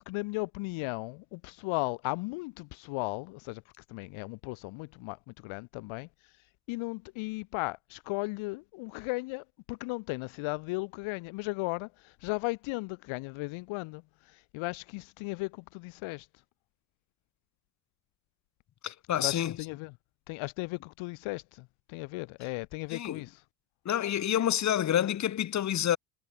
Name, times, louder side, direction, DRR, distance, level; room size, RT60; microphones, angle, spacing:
voice 1, 0.0-3.6 3.9-6.1 6.7-14.0 14.3-16.3 19.2-19.9 20.3-23.3, left 25 dB, 75° left, 3.2 m, -36 dB
voice 2, 18.8-19.6 22.9-23.2 23.8-26.0, left 11 dB, 35° left, 1.1 m, -28 dB
cardioid pair, 115°, 48 cm